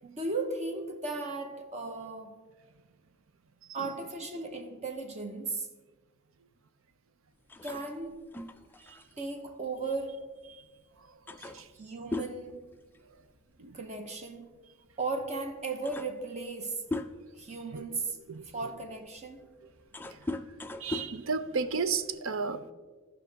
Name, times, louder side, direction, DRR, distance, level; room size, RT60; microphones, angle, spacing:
voice 1, 0.0-2.3 3.7-5.7 7.6-8.2 9.2-10.3 11.8-12.7 13.7-14.6 15.0-16.9 17.4-18.2 18.5-19.5, right 3 dB, 30° right, 0.8 m, -36 dB
sound 1, 7.5-10.5 10.8-10.9 11.3-13.4 13.7-14.0 15.0-15.1 15.5-17.5 18.1-22.2, left 2 dB, 10° left, 0.3 m, -40 dB
voice 2, 20.8-22.7, right 4 dB, 65° right, 0.6 m, -33 dB
16.0 x 5.5 x 3.9 m
head